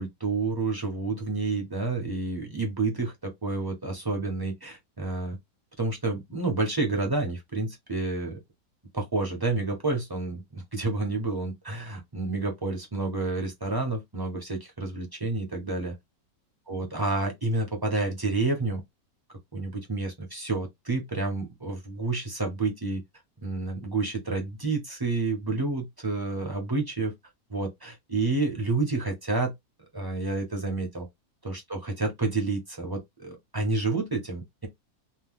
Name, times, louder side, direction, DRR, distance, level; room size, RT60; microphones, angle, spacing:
voice 1, 0.0-5.4 5.8-8.4 8.9-15.9 16.7-18.8 19.5-23.0 23.4-27.1 27.5-29.5 29.9-31.1 31.4-34.7, right 3 dB, 20° right, 0.6 m, -29 dB
2.8 x 2.1 x 3.5 m
omnidirectional pair, 1.6 m